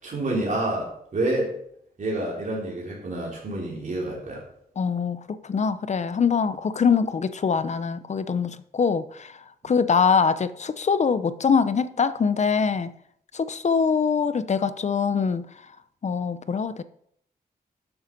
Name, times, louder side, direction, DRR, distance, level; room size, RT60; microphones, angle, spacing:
voice 1, 0.0-1.5 2.0-4.4 9.6-9.7, right 1 dB, 50° right, 3.6 m, -28 dB
voice 2, 4.8-9.3 9.6-12.9 13.3-15.5 16.0-16.8, left 6 dB, 45° left, 0.7 m, -23 dB
12.0 x 7.1 x 5.3 m
wide cardioid pair, 155°, 16 cm